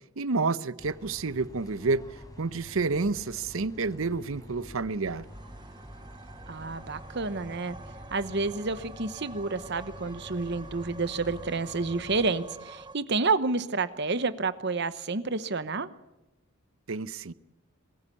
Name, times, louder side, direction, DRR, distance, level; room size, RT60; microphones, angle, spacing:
voice 1, 0.2-2.0 2.4-5.3 16.9-17.3, right 3 dB, 70° right, 17 dB, 0.7 m, -29 dB
Jiřího z Poděbrad-church bells, 0.8-12.3, equal, 15° left, 4.1 m, -48 dB
sound 1, 5.0-13.0, right 2 dB, 20° right, 0.7 m, -47 dB
voice 2, 6.5-7.8 8.1-15.9, right 3 dB, 50° right, 13 dB, 0.9 m, -29 dB
22.5 x 15.5 x 8.5 m, 0.97 s
head